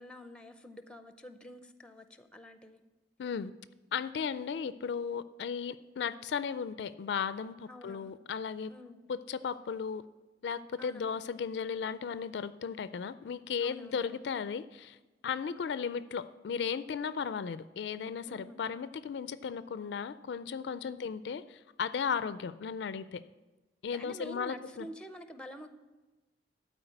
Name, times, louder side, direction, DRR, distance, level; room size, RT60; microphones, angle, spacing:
voice 1, 0.0-2.8 7.7-8.2 8.7-9.1 10.8-11.3 13.6-14.2 18.3-18.6 20.8-21.0 23.9-25.7, equal, 5° left, 9 dB, 0.6 m, -48 dB
voice 2, 3.2-3.5 3.9-8.7 9.1-10.0 10.4-15.0 15.2-23.2 23.8-24.9, left 6 dB, 70° left, 14 dB, 0.3 m, -35 dB
12.0 x 4.5 x 7.8 m, 1.1 s
head